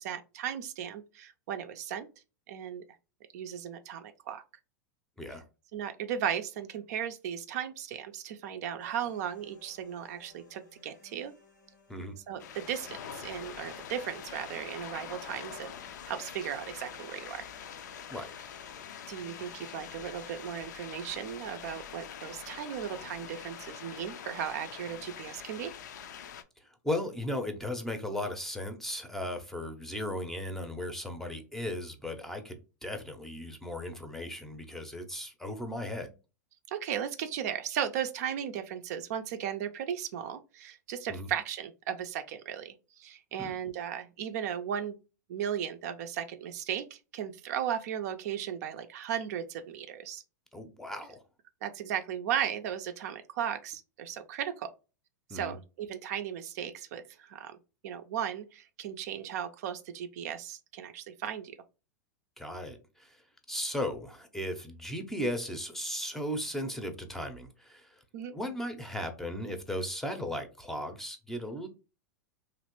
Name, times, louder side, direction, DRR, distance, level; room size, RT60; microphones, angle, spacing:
voice 1, 0.0-2.1 2.5-2.8 3.3-4.4 5.7-11.3 12.3-15.7 16.1-17.5 19.1-25.7 36.7-45.0 45.3-50.2 51.6-54.7 55.3-57.6 57.8-61.5 68.1-68.3, right 9 dB, 60° right, 0.4 m, -36 dB
sound 1, 8.8-24.8, left 3 dB, 90° left, 1.2 m, -60 dB
sound 2, 12.4-26.4, left 8 dB, 70° left, 0.4 m, -45 dB
voice 2, 26.6-36.1 41.1-41.3 43.4-43.5 50.5-51.2 55.3-55.6 62.4-63.2 63.5-68.0 68.3-71.7, left 1 dB, 5° left, 0.6 m, -36 dB
3.0 x 2.5 x 2.9 m
hypercardioid pair, 100°, 10 cm